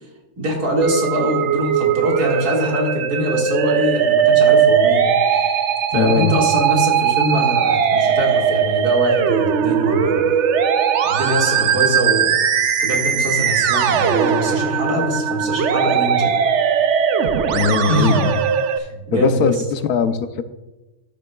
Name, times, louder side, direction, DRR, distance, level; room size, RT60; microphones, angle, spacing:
voice 1, 0.4-5.1 5.9-10.3 11.1-12.4 12.8-16.3 17.9-18.3 18.8-19.6, equal, 85° right, -1 dB, 2.6 m, -22 dB
Musical instrument, 0.8-18.8, right 8 dB, 60° right, 0.8 m, -19 dB
voice 2, 5.9-6.3 17.5-18.3 19.1-20.4, left 6 dB, 80° left, 10 dB, 1.2 m, -20 dB
13.5 x 9.2 x 2.3 m, 1.0 s
omnidirectional pair, 1.6 m